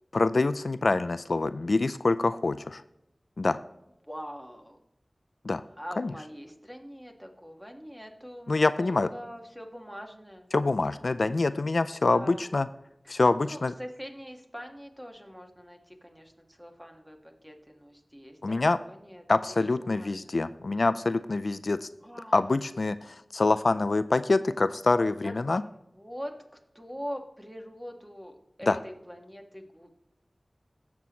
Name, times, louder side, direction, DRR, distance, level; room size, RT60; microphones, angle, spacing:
voice 1, 0.1-2.8 3.4-3.6 5.4-5.6 6.0-6.1 8.5-9.1 10.5-12.7 13.1-13.7 18.4-18.8 19.3-21.9 22.3-25.6 28.7-28.8, left 3 dB, 80° left, 12 dB, 0.4 m, -25 dB
voice 2, 4.1-4.8 5.8-10.5 12.1-12.5 13.1-19.2 19.8-20.4 22.0-22.4 25.2-25.3 25.7-26.3 26.7-29.9, equal, 10° right, 3 dB, 1.8 m, -43 dB
17.5 x 7.0 x 3.1 m, 0.84 s
wide cardioid pair, 45°, 0 cm